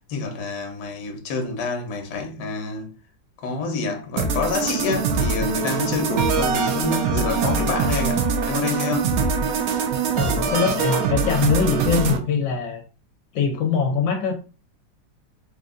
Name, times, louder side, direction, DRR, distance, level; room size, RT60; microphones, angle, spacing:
voice 1, 0.1-2.9 3.4-9.1, left 4 dB, 60° left, 1.4 m, -27 dB
sound 1, 4.2-12.2, right 5 dB, 70° right, 0.9 m, -23 dB
voice 2, 10.2-12.8 13.3-14.3, left 6 dB, 80° left, 1.4 m, -22 dB
3.8 x 2.5 x 3.7 m
omnidirectional pair, 2.0 m